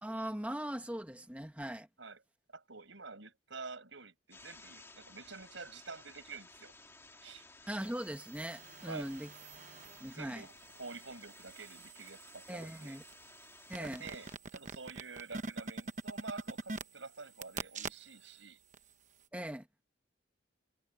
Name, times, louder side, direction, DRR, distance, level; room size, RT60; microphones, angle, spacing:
voice 1, 0.0-1.9 7.7-9.3 10.0-10.4 12.5-13.0 13.7-14.0 19.3-19.7, right 1 dB, 5° right, 1.4 m, -40 dB
voice 2, 2.5-6.7 7.2-7.5 8.8-9.1 10.0-13.0 13.8-18.6, right 4 dB, 80° right, 5.7 m, -48 dB
sound 1, 4.3-14.3, left 3 dB, 15° left, 2.0 m, -57 dB
sound 2, 8.1-10.1 10.6-18.4 18.7-18.8, right 3 dB, 40° right, 1.0 m, -45 dB
head